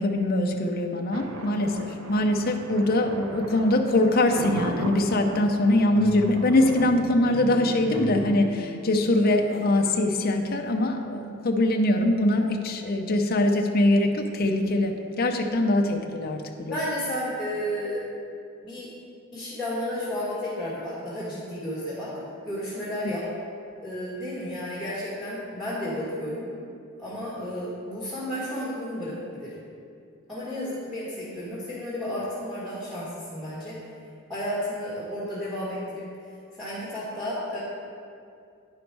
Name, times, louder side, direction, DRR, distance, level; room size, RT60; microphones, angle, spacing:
voice 1, 0.0-16.8, left 1 dB, 50° left, 2 dB, 0.6 m, -23 dB
Thunder, 1.1-6.9, right 2 dB, 80° right, 0.6 m, -37 dB
sound 1, 5.9-11.0, equal, 15° left, 0.9 m, -38 dB
voice 2, 16.6-18.1 18.6-18.9 19.3-22.1 22.4-23.3 23.8-26.5 27.0-29.6 30.3-33.8 34.3-36.0 36.6-37.6, left 1 dB, ahead, -9 dB, 1.7 m, -32 dB
10.5 x 5.2 x 4.6 m, 2.4 s
head